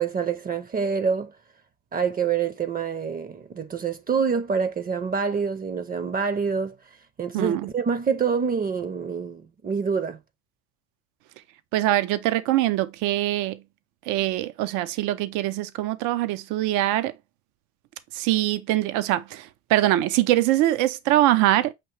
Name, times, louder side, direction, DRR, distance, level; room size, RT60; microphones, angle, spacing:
voice 1, 0.0-1.3 1.9-6.8 7.2-10.2, right 6 dB, 30° right, 0.5 m, -26 dB
voice 2, 7.3-7.7 11.7-13.6 14.1-17.1 18.1-21.7, right 15 dB, 85° right, 0.5 m, -23 dB
5.8 x 2.8 x 3.1 m
supercardioid pair, 85°, 30 cm